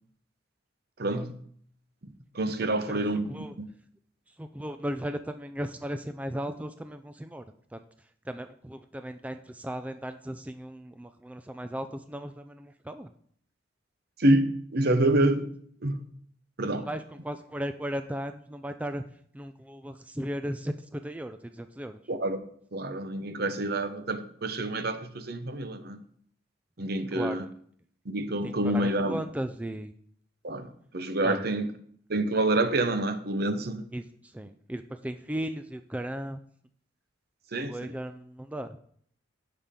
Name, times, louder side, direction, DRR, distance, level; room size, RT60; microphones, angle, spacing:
voice 1, 1.0-1.3 2.0-3.7 14.2-15.5 15.8-16.0 16.6-16.9 22.1-22.4 22.7-26.0 26.8-27.5 28.1-29.2 30.4-31.7 32.1-33.9 37.5-37.9, right 1 dB, 55° right, 0.9 m, -27 dB
voice 2, 4.4-7.4 7.7-7.8 8.3-13.1 16.8-19.0 19.3-22.0 27.1-27.5 28.4-29.9 31.2-31.4 33.9-36.4 37.7-38.8, equal, 5° right, 0.3 m, -36 dB
16.5 x 5.8 x 3.7 m
head